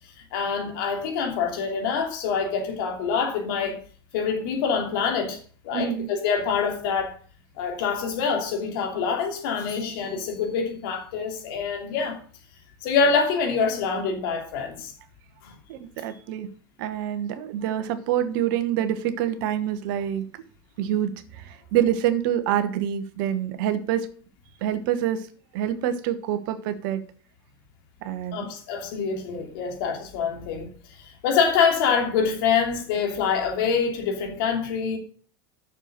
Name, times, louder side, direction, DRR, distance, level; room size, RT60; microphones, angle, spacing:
voice 1, 0.2-3.8 4.1-5.4 5.6-7.2 7.6-12.2 12.8-14.9 15.4-15.6 16.1-16.2 28.3-35.0, left 6 dB, 65° left, 2.9 m, -25 dB
voice 2, 5.7-6.1 15.7-16.5 16.8-20.4 20.8-24.1 24.6-25.3 25.5-27.0 28.0-28.5, right 10 dB, 60° right, 1.3 m, -26 dB
7.3 x 6.8 x 6.7 m
hypercardioid pair, 85°, 12 cm